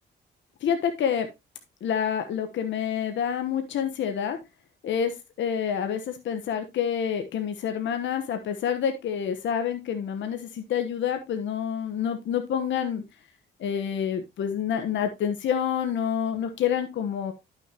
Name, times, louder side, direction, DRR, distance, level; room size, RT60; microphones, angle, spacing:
voice 1, 0.6-1.3 1.8-4.4 4.8-5.1 5.4-13.0 13.6-17.3, left 8 dB, 70° left, 7 dB, 1.2 m, -28 dB
11.0 x 6.3 x 2.9 m, 0.22 s
cardioid pair, 90°, 20 cm